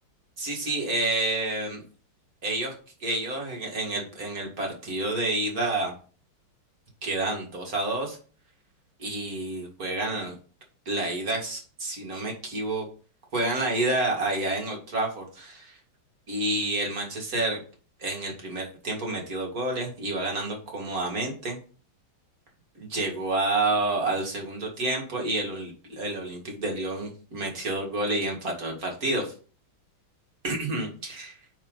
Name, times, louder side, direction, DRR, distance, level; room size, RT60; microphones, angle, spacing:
voice 1, 0.4-1.8 2.4-2.7 3.0-5.9 7.0-8.2 9.0-10.4 10.9-12.9 13.3-15.8 16.3-17.6 18.0-21.6 22.8-29.3 30.4-31.4, right 2 dB, 45° right, 0 dB, 2.4 m, -29 dB
8.8 x 4.3 x 3.9 m, 0.39 s
omnidirectional pair, 2.3 m